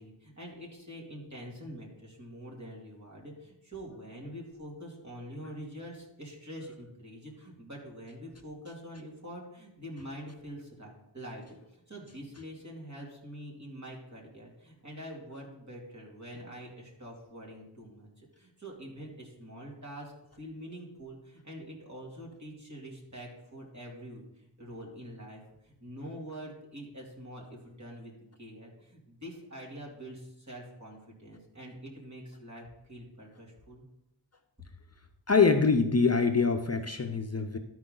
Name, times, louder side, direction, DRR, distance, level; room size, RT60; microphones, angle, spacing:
voice 1, 0.0-11.4 11.7-33.8, equal, 40° right, -2 dB, 2.7 m, -45 dB
voice 2, 35.3-37.6, left 4 dB, 35° left, 6 dB, 0.6 m, -24 dB
13.0 x 4.8 x 3.8 m, 0.87 s
wide cardioid pair, 45°, 43 cm